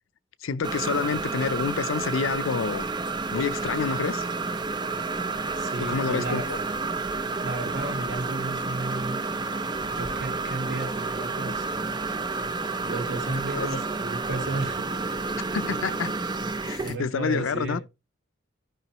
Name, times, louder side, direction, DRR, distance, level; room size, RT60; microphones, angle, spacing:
voice 1, 0.4-2.9 3.3-4.2 5.8-6.6 13.5-13.7 15.5-16.2 16.6-17.8, left 5 dB, 85° left, 0.5 m, -28 dB
sound 1, 0.6-17.0, right 3 dB, 20° right, 0.5 m, -30 dB
voice 2, 5.6-6.5 7.4-9.2 9.9-11.7 12.8-14.8 16.8-17.8, right 2 dB, 65° right, 2.5 m, -33 dB
15.0 x 5.3 x 3.0 m
head